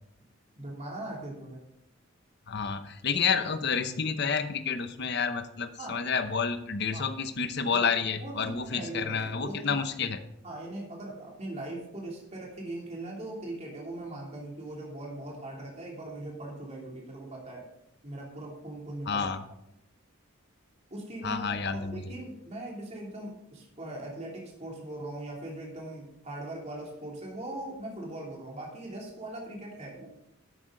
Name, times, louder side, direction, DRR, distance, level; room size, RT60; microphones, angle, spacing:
voice 1, 0.5-1.6 5.8-6.0 6.9-7.1 7.6-7.9 8.2-9.8 10.4-17.7 18.0-19.2 20.9-30.1, right 1 dB, 30° right, -2 dB, 2.9 m, -40 dB
voice 2, 2.5-10.2 19.1-19.4 21.2-22.1, left 5 dB, 50° left, 9 dB, 0.8 m, -30 dB
12.0 x 8.7 x 3.9 m, 0.78 s
head